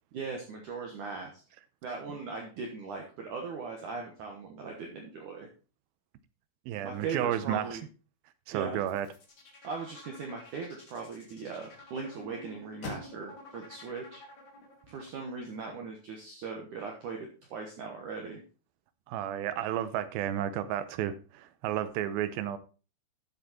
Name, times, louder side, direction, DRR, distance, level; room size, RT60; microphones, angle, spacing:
voice 1, 0.1-1.4 1.8-5.5 6.8-7.8 8.5-8.8 9.6-14.2 14.9-18.4, right 4 dB, 60° right, 2.2 m, -39 dB
voice 2, 6.7-7.8 8.5-9.1 19.1-22.6, right 11 dB, 80° right, 2.2 m, -32 dB
sound 1, 8.7-15.0, left 3 dB, 40° left, 1.9 m, -52 dB
sound 2, 9.3-15.4, left 3 dB, 60° left, 3.5 m, -51 dB
10.5 x 7.7 x 4.3 m
omnidirectional pair, 5.0 m